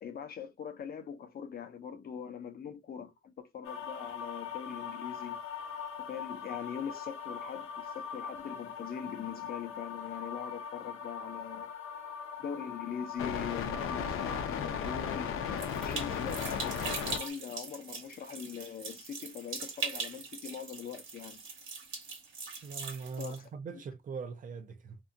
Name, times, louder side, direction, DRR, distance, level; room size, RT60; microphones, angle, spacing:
voice 1, 0.0-5.4 6.0-11.7 12.4-15.4 15.7-21.4 23.2-23.8, left 7 dB, 45° left, 0.6 m, -42 dB
sound 1, 3.6-17.3, left 7 dB, 90° left, 0.6 m, -38 dB
sound 2, 15.6-23.4, right 4 dB, 70° right, 1.2 m, -41 dB
voice 2, 22.6-25.0, right 5 dB, 40° right, 0.4 m, -41 dB
2.6 x 2.3 x 2.5 m
cardioid pair, 135°, 21 cm